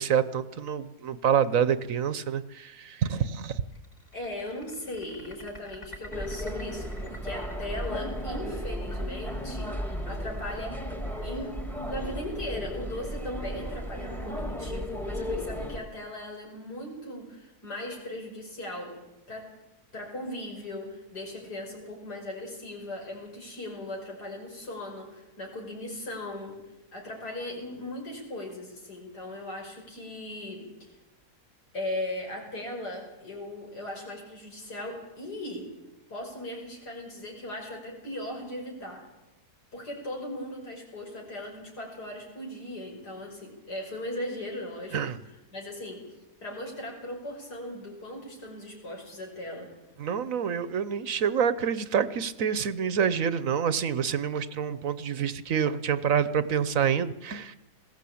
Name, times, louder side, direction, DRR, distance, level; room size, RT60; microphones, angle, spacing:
voice 1, 0.0-3.6 44.9-45.2 50.0-57.6, right 7 dB, 60° right, 14 dB, 1.2 m, -27 dB
sound 1, 3.8-12.4, equal, 45° left, 5.6 m, -47 dB
voice 2, 4.1-10.8 11.2-19.0 19.3-19.6 19.9-26.6 26.9-30.9 31.7-35.8 36.1-39.1 39.7-45.0 45.3-46.1 46.4-49.7, left 1 dB, 90° left, 0 dB, 6.2 m, -38 dB
sound 2, 6.1-15.8, equal, ahead, 1.5 m, -35 dB
21.0 x 16.5 x 8.6 m, 0.99 s
omnidirectional pair, 1.7 m